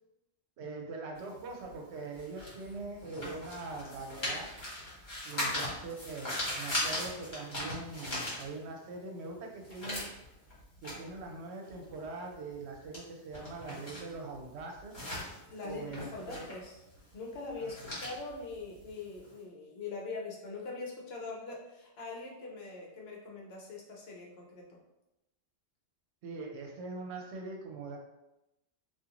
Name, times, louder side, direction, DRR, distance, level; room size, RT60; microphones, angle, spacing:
voice 1, 0.6-4.5 5.2-10.0 10.8-15.0 15.6-16.5 17.6-17.9 26.2-28.0, right 3 dB, 75° right, 1 dB, 0.8 m, -42 dB
sound 1, 1.2-8.9 9.3-19.3, left 1 dB, 45° left, 1.2 m, -39 dB
voice 2, 15.5-16.8 17.1-24.6, left 3 dB, 65° left, -1 dB, 0.8 m, -42 dB
2.4 x 2.3 x 2.9 m, 0.93 s
omnidirectional pair, 1.2 m